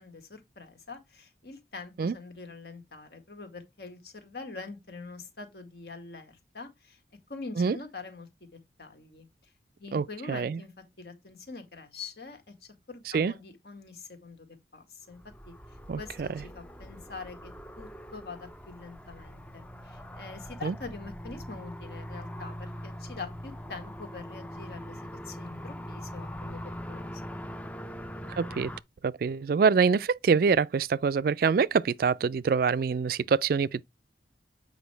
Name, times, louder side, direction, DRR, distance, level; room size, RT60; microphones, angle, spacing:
voice 1, 0.0-7.0 7.3-9.5 9.8-12.5 12.9-14.5 14.7-15.2 15.5-27.2, left 4 dB, 60° left, 1.9 m, -44 dB
voice 2, 9.9-10.6 13.1-13.3 15.9-16.3 20.6-20.7 28.4-28.7 29.0-33.8, right 5 dB, 55° right, 0.3 m, -25 dB
sound 1, 15.1-28.8, equal, 10° left, 0.5 m, -42 dB
8.1 x 5.1 x 3.3 m
head